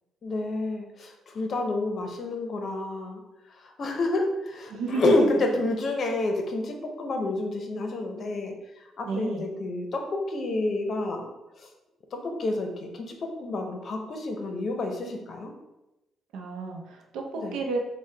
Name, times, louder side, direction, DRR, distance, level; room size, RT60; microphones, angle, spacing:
voice 1, 0.2-3.2 3.6-11.3 11.6-11.7 12.1-15.5 17.3-17.6, left 2 dB, 55° left, 3 dB, 0.7 m, -29 dB
voice 2, 4.7-5.1 9.1-9.5 16.3-17.8, right 4 dB, 85° right, 2 dB, 0.6 m, -31 dB
4.5 x 2.2 x 3.3 m, 0.96 s
cardioid pair, 90°, 0 cm